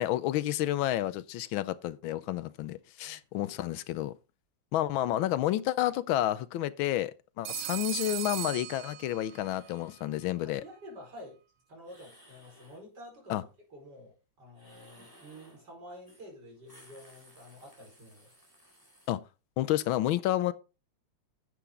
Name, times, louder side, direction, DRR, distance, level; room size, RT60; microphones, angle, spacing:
voice 1, 0.0-4.1 4.7-10.6 13.3-13.4 19.1-19.2 19.6-20.5, left 14 dB, 85° left, 1.4 m, -30 dB
voice 2, 3.0-3.5 10.4-11.4 11.7-18.3, equal, 55° right, 5.2 m, -50 dB
Telephone, 7.4-9.5, right 15 dB, 90° right, 1.6 m, -37 dB
sound 1, 8.2-8.5 9.1-10.1 11.8-12.9 14.5-15.6 16.0-16.3 16.5-19.1, equal, 10° right, 3.8 m, -59 dB
10.0 x 7.8 x 3.7 m
omnidirectional pair, 2.2 m